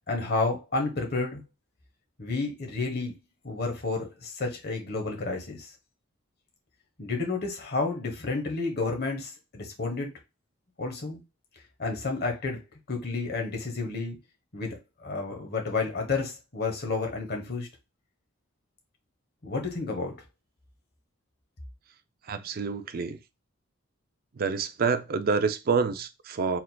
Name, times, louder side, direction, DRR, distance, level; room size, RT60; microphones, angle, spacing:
voice 1, 0.1-1.4 2.2-3.1 3.4-5.7 7.0-10.1 10.8-11.2 11.8-12.6 12.9-14.2 14.5-17.7 19.4-20.1, left 3 dB, 45° left, 1.1 m, -31 dB
voice 2, 22.3-23.2 24.4-26.6, right 5 dB, 45° right, 0.4 m, -27 dB
4.4 x 3.8 x 2.2 m
head